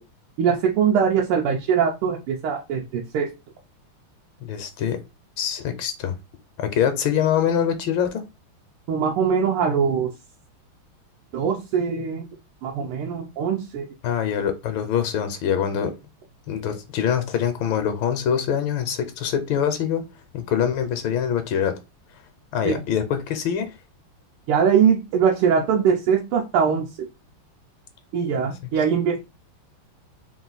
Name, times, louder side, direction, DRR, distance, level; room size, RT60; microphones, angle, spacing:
voice 1, 0.4-3.3 8.9-10.1 11.3-12.2 12.6-13.8 22.6-22.8 24.5-26.9 28.1-29.2, right 7 dB, 90° right, 1.6 m, -22 dB
voice 2, 4.4-5.0 5.4-6.2 6.6-8.2 14.0-15.9 16.5-20.0 20.3-21.7 22.5-23.7, left 8 dB, 75° left, 1.3 m, -24 dB
3.8 x 2.4 x 3.9 m
omnidirectional pair, 2.4 m